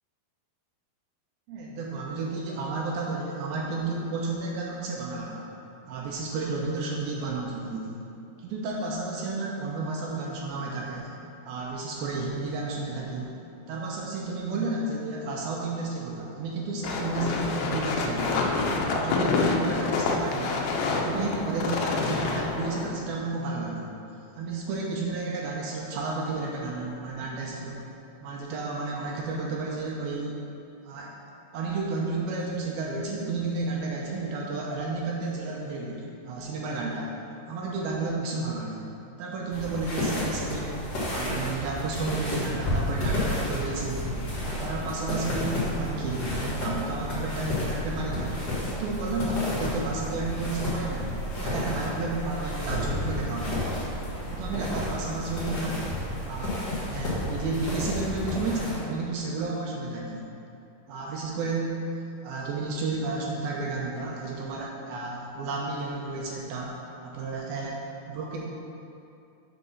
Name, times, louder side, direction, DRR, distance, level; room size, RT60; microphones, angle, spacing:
voice 1, 1.5-5.5 5.9-8.0 8.4-11.1 11.4-13.3 13.7-18.5 18.9-20.6 20.9-23.9 24.4-27.8 28.2-30.4 30.8-31.1 31.5-37.1 37.5-38.9 39.2-40.8 41.1-44.0 44.4-48.3 48.7-51.1 51.4-53.9 54.3-55.7 56.2-56.6 56.9-60.2 60.9-61.8 62.2-66.7 67.0-67.8 68.1-68.4, right 3 dB, 80° right, -2 dB, 2.4 m, -32 dB
sound 1, 16.8-22.9, left 3 dB, 85° left, 2.8 m, -27 dB
sound 2, 39.5-58.8, left 1 dB, 45° left, 1.3 m, -31 dB
7.8 x 4.0 x 6.0 m, 2.7 s
omnidirectional pair, 4.7 m